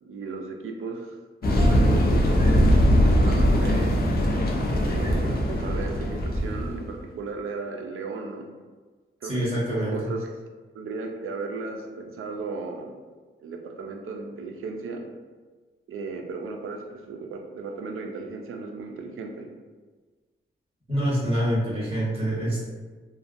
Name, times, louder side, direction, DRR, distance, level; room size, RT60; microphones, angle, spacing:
voice 1, 0.0-1.2 1.4-4.0 4.8-8.4 9.2-10.3 10.7-13.0 13.4-15.0 15.9-19.5, right 4 dB, 80° right, 3 dB, 0.4 m, -35 dB
sound 1, 1.4-6.9, equal, 45° left, 0.5 m, -21 dB
voice 2, 9.2-9.9 20.9-22.7, equal, 25° right, -9 dB, 1.4 m, -26 dB
2.5 x 2.2 x 2.5 m, 1.4 s
cardioid pair, 75°, 21 cm